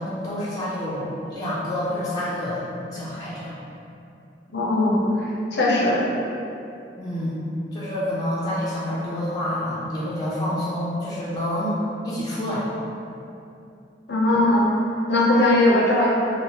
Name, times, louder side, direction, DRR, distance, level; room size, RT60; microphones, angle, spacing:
voice 1, 0.0-2.6 2.9-3.6 7.0-12.7, left 1 dB, 20° left, -9 dB, 0.4 m, -28 dB
voice 2, 4.5-5.1 5.5-6.0 14.1-14.7 15.1-16.1, left 1 dB, 65° left, -5 dB, 0.6 m, -19 dB
3.1 x 2.3 x 2.7 m, 2.7 s
head